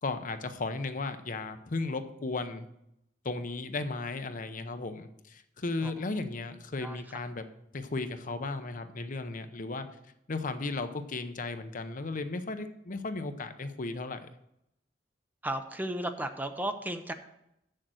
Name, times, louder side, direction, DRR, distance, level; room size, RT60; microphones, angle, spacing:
voice 1, 0.0-2.7 3.2-7.4 7.7-9.9 10.3-14.3, left 3 dB, 45° left, 9 dB, 0.7 m, -35 dB
voice 2, 15.4-17.1, right 1 dB, 10° right, 8 dB, 0.6 m, -34 dB
7.5 x 6.6 x 7.6 m, 0.80 s
head